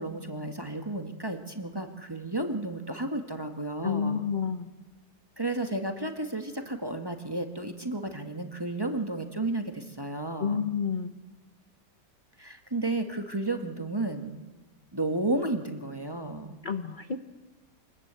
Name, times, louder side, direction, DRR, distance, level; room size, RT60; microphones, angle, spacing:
voice 1, 0.0-4.2 5.4-10.7 12.4-14.3 14.9-16.6, right 2 dB, 15° right, 5 dB, 1.3 m, -32 dB
voice 2, 3.8-4.7 10.4-11.1 16.6-17.2, left 6 dB, 40° left, 9 dB, 0.7 m, -29 dB
25.0 x 20.0 x 8.2 m, 1.3 s
omnidirectional pair, 1.8 m